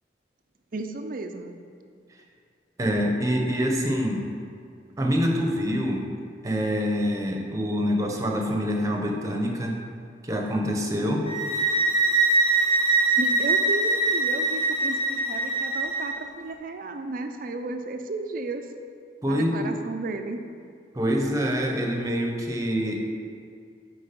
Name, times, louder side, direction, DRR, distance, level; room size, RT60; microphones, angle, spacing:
voice 1, 0.7-1.6 13.2-18.7 19.3-20.4, right 2 dB, 50° right, 6 dB, 0.5 m, -33 dB
voice 2, 2.8-4.2 5.0-6.0 6.4-9.8 10.2-11.2 19.2-19.7 20.9-23.0, equal, 20° right, 1 dB, 0.9 m, -25 dB
sound 1, 11.3-16.2, right 3 dB, 35° left, 0.9 m, -23 dB
8.7 x 4.7 x 5.3 m, 2.3 s
head